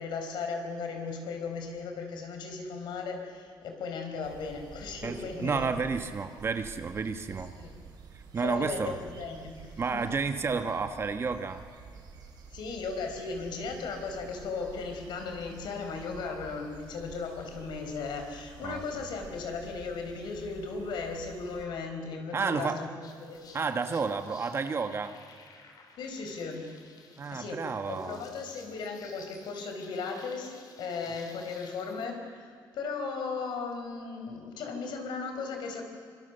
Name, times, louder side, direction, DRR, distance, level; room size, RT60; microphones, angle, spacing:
voice 1, 0.0-5.8 7.6-7.7 8.4-10.2 12.5-22.9 23.2-23.5 26.0-26.7 27.3-35.8, left 4 dB, 70° left, 4 dB, 4.6 m, -36 dB
sound 1, 4.2-21.6, right 5 dB, 60° right, 4.4 m, -50 dB
voice 2, 5.0-7.5 8.3-8.9 9.8-11.6 18.6-18.8 22.3-22.8 23.5-25.1 27.2-28.2, right 5 dB, 30° right, 8 dB, 1.3 m, -31 dB
sound 2, 23.0-32.1, left 4 dB, 55° left, 3.2 m, -55 dB
25.0 x 24.0 x 6.9 m, 2.1 s
cardioid pair, 135°, 8 cm